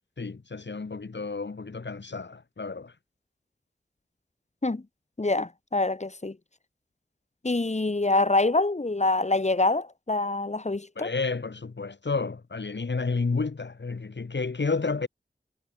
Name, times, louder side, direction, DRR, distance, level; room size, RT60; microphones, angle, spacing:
voice 1, 0.2-2.9 10.9-15.1, left 4 dB, 75° left, 6.7 m, -31 dB
voice 2, 5.2-6.4 7.4-11.1, left 2 dB, 40° left, 2.6 m, -25 dB
wide cardioid pair, 65°, 19 cm